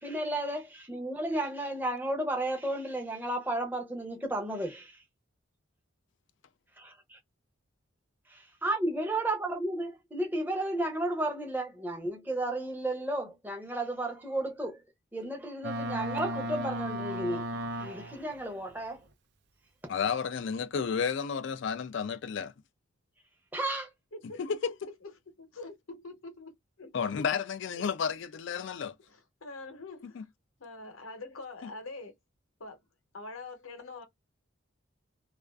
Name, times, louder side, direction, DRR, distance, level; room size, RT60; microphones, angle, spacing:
voice 1, 0.0-5.0 6.8-6.9 8.6-14.8 15.1-19.0 19.8-19.9 23.5-23.8, right 1 dB, 10° right, 0.7 m, -33 dB
Boat Water vehicle, 15.6-18.3, equal, 55° right, 0.4 m, -35 dB
voice 2, 19.9-22.5 24.4-24.7 26.9-28.9 30.1-30.2, left 6 dB, 60° left, 0.3 m, -32 dB
voice 3, 25.4-26.9 29.1-30.3 30.6-32.1 32.6-32.8 33.1-34.1, left 3 dB, 80° left, 0.8 m, -44 dB
2.4 x 2.3 x 2.2 m
head